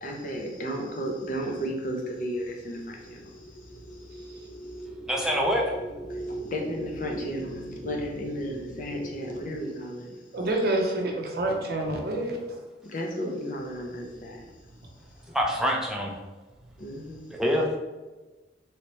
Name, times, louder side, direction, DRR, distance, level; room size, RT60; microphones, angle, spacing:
voice 1, 0.0-4.8 6.1-10.2 12.8-14.4 16.8-17.3, equal, 45° left, 1 dB, 0.5 m, -34 dB
sound 1, 1.4-9.6, right 1 dB, 75° left, 1.0 m, -41 dB
voice 2, 5.1-5.7 15.3-16.1 17.3-17.7, equal, 5° right, -2 dB, 0.4 m, -25 dB
voice 3, 10.3-12.4, right 1 dB, 55° right, 1 dB, 0.5 m, -27 dB
3.2 x 2.8 x 3.0 m, 1.2 s
head